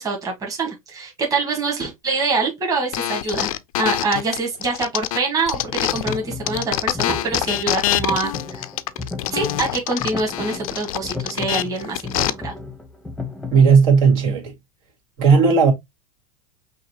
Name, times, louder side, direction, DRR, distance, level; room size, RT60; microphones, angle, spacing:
voice 1, 0.0-3.5 3.8-5.6 5.9-8.3 9.3-12.5, right 3 dB, 20° right, 1.7 m, -25 dB
sound 1, 2.9-6.2 6.5-12.3, left 14 dB, 85° left, 0.5 m, -25 dB
sound 2, 5.7-13.8, left 3 dB, 5° left, 0.8 m, -34 dB
voice 2, 13.5-14.5 15.2-15.7, right 5 dB, 65° right, 2.2 m, -14 dB
5.7 x 2.6 x 2.8 m
supercardioid pair, 120°, 18 cm